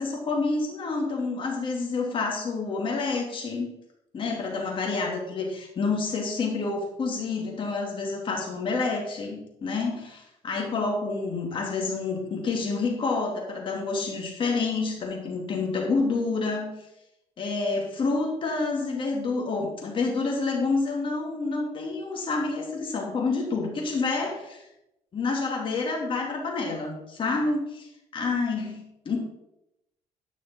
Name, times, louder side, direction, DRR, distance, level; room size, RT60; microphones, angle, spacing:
voice 1, 0.0-3.7 4.1-16.7 17.4-24.6 25.1-27.6 28.1-29.2, left 3 dB, 40° left, 0 dB, 2.6 m, -28 dB
9.9 x 5.9 x 4.5 m, 0.86 s
cardioid pair, 120°, 13 cm